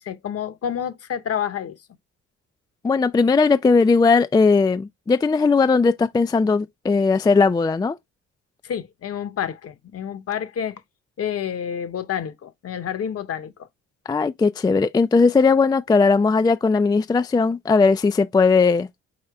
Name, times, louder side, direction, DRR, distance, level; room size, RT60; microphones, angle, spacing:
voice 1, 0.0-1.7 8.6-10.8 11.2-13.7, left 9 dB, 50° left, 0.9 m, -29 dB
voice 2, 2.8-8.0 14.1-18.9, left 4 dB, 15° left, 0.3 m, -18 dB
5.0 x 4.4 x 2.3 m
cardioid pair, 90°, 30 cm